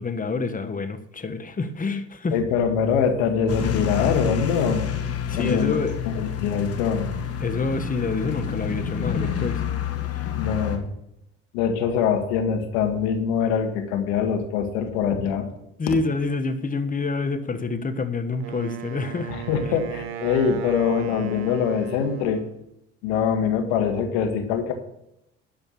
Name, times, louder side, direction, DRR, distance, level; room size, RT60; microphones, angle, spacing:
voice 1, 0.0-2.4 5.3-6.0 7.4-9.6 10.1-10.2 15.8-19.3, left 4 dB, 25° left, 9 dB, 1.4 m, -27 dB
voice 2, 2.3-4.9 5.4-5.8 6.1-7.1 10.4-10.8 11.5-15.5 19.3-22.4 23.0-24.7, left 7 dB, 75° left, 5 dB, 1.8 m, -23 dB
sound 1, 3.5-10.8, left 8 dB, 50° left, 1.8 m, -28 dB
Wind instrument woodwind instrument, 18.4-22.6, right 9 dB, 80° right, 1.0 m, -37 dB
12.0 x 5.2 x 8.7 m, 0.84 s
hypercardioid pair, 65°, 31 cm